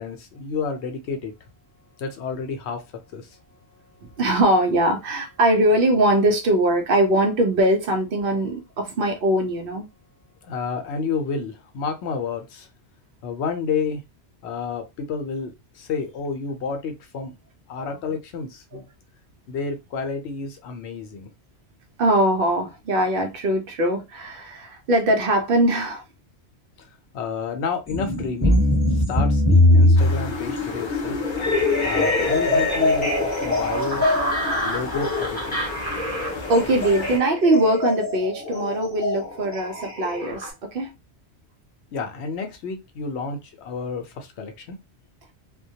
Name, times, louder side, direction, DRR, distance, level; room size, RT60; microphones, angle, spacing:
voice 1, 0.0-1.3 2.0-2.8 3.1-3.3 10.4-12.7 13.2-14.0 14.4-17.4 17.7-18.9 19.5-21.3 27.1-28.6 28.9-31.2 31.8-34.0 34.6-35.6 41.9-44.8, left 5 dB, 75° left, 0.9 m, -30 dB
voice 2, 4.0-9.9 17.8-18.2 18.7-18.8 22.0-26.0 36.2-40.9, right 1 dB, 60° right, 0.7 m, -21 dB
sound 1, 27.9-40.5, left 1 dB, 10° left, 1.1 m, -22 dB
sound 2, 30.0-37.2, left 3 dB, 45° left, 0.3 m, -33 dB
2.2 x 2.2 x 2.7 m
omnidirectional pair, 1.1 m